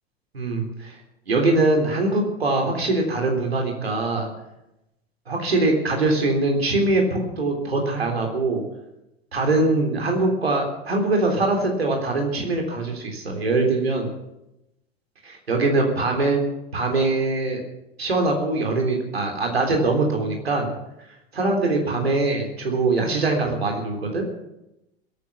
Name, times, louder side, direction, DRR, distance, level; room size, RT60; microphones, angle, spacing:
voice 1, 0.3-0.9 1.3-4.3 5.3-8.6 9.3-14.1 15.2-16.4 16.7-17.6 18.0-20.7 21.3-24.2, right 2 dB, 75° right, 1 dB, 3.8 m, -22 dB
21.0 x 9.4 x 7.0 m, 0.89 s
figure-of-eight pair, 80°, 31 cm